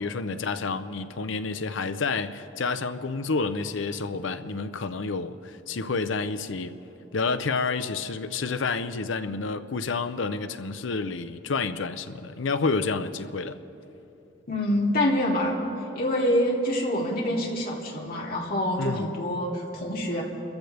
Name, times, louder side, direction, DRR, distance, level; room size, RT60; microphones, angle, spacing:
voice 1, 0.0-6.7 7.1-13.6 18.8-19.0, left 4 dB, 75° left, 0.6 m, -29 dB
voice 2, 14.5-15.6 15.9-20.2, left 1 dB, 50° left, 2.8 m, -26 dB
27.5 x 14.5 x 3.4 m
head